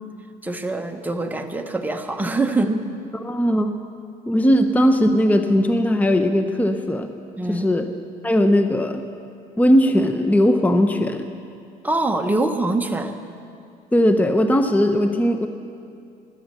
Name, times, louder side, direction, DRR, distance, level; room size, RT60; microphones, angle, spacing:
voice 1, 0.4-2.9 7.4-7.7 11.8-13.2, right 2 dB, 10° right, 5 dB, 1.1 m, -24 dB
voice 2, 3.1-3.7 4.3-7.1 7.5-7.9 8.2-9.0 9.6-11.3 13.9-15.5, equal, 10° left, 7 dB, 0.8 m, -18 dB
17.0 x 12.0 x 6.7 m, 2.4 s
cardioid pair, 110°, 17 cm